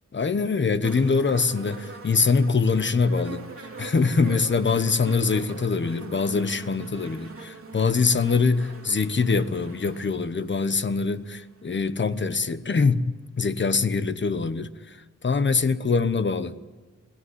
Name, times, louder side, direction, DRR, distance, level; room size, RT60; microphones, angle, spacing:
voice 1, 0.1-13.1 13.4-16.6, left 4 dB, 40° left, 12 dB, 1.0 m, -24 dB
sound 1, 0.8-11.9 12.8-12.9, right 3 dB, 45° right, 3.2 m, -43 dB
24.0 x 17.0 x 9.8 m, 1.3 s
wide cardioid pair, 160°, 31 cm